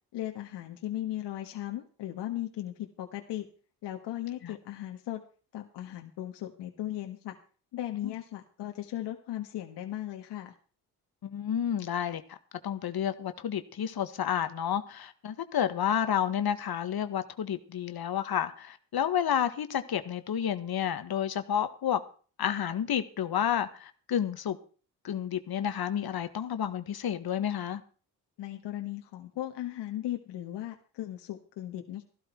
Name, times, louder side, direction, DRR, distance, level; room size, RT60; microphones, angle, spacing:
voice 1, 0.1-3.5 3.8-5.2 5.5-7.3 7.7-10.5 28.4-32.0, left 13 dB, 85° left, 1.6 m, -37 dB
voice 2, 11.2-12.4 12.6-22.0 22.4-24.6 25.0-27.8, left 9 dB, 65° left, 1.6 m, -30 dB
14.5 x 12.5 x 4.5 m
cardioid pair, 75°, 41 cm